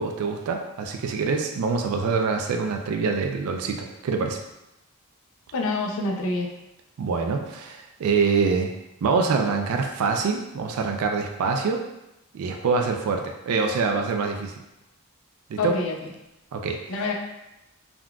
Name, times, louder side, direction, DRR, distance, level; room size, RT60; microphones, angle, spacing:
voice 1, 0.0-4.4 7.0-8.7 9.0-11.8 12.3-14.6 15.6-15.7 16.5-16.8, right 4 dB, 70° right, 3 dB, 0.3 m, -25 dB
voice 2, 5.5-6.5 15.6-16.1 16.9-17.1, left 3 dB, 65° left, 1 dB, 0.5 m, -27 dB
3.6 x 2.3 x 2.2 m, 0.92 s
head